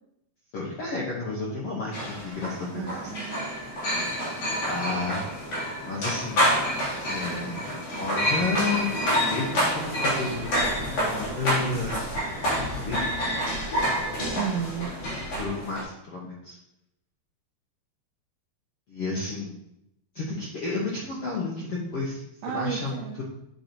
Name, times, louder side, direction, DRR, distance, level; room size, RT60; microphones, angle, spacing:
voice 1, 0.5-3.0 4.7-5.2 5.9-6.4 7.1-7.6 8.0-12.3 12.8-13.3 15.4-16.6 18.9-19.5 20.1-22.2 22.5-23.2, left 3 dB, 75° left, -6 dB, 1.4 m, -31 dB
sound 1, 1.9-15.8, equal, 50° left, 4.3 m, -28 dB
voice 2, 2.7-3.6 4.0-4.1 7.3-7.6 14.4-14.9 22.4-23.2, right 8 dB, 85° right, 2 dB, 2.1 m, -33 dB
8.1 x 7.0 x 3.0 m, 0.82 s
omnidirectional pair, 4.7 m